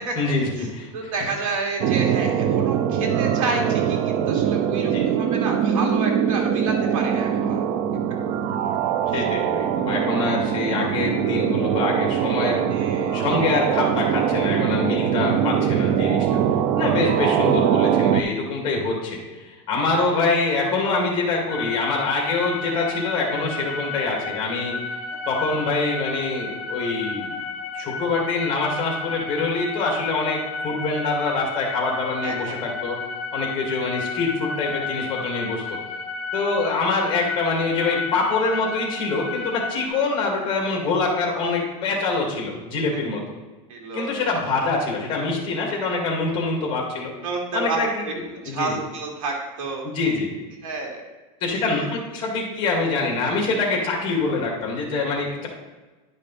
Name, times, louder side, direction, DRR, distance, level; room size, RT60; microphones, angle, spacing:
voice 1, 0.2-1.1 4.8-5.1 9.1-12.7 13.1-16.4 16.8-24.8 25.3-27.4 27.7-33.0 33.3-35.8 36.3-43.2 43.9-47.1 47.5-48.8 49.8-50.3 51.4-55.5, left 3 dB, 30° left, -1 dB, 2.3 m, -25 dB
voice 2, 0.9-4.0 4.3-7.6 12.7-13.2 32.2-32.5 43.7-44.2 47.2-48.1 48.4-49.9 50.6-51.0 51.5-51.8, right 3 dB, 80° right, 0 dB, 2.3 m, -30 dB
sound 1, 1.8-18.2, right 8 dB, 50° right, 0.5 m, -22 dB
sound 2, 21.5-39.9, left 4 dB, 50° left, 1.3 m, -32 dB
10.5 x 5.3 x 4.2 m, 1.2 s
supercardioid pair, 155°, 17 cm